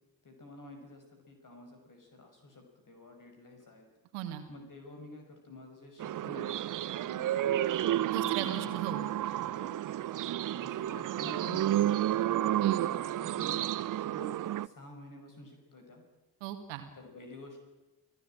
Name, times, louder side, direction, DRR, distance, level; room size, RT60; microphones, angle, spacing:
voice 1, 0.2-3.8 4.5-6.5 6.9-8.5 9.0-9.7 10.5-13.6 14.0-16.0 16.9-17.6, left 1 dB, 40° left, 4 dB, 5.8 m, -50 dB
voice 2, 4.1-4.4 8.1-9.1 12.6-12.9 16.4-16.8, right 11 dB, 70° right, 7 dB, 2.1 m, -37 dB
sound 1, 6.0-14.7, right 12 dB, 40° right, 0.8 m, -31 dB
29.0 x 16.5 x 8.9 m, 1.1 s
figure-of-eight pair, 40°, 48 cm